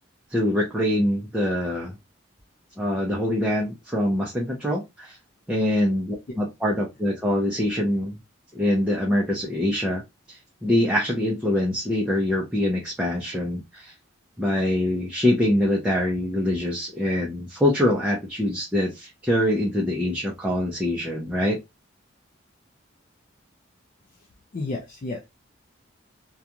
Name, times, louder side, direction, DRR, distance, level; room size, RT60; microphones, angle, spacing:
voice 1, 0.3-2.0 2.8-5.2 5.5-8.2 8.5-10.0 10.3-13.9 14.4-21.6, left 1 dB, 5° right, 0.5 m, -24 dB
voice 2, 24.5-25.3, left 2 dB, 40° left, 0.4 m, -32 dB
2.4 x 2.2 x 2.7 m
head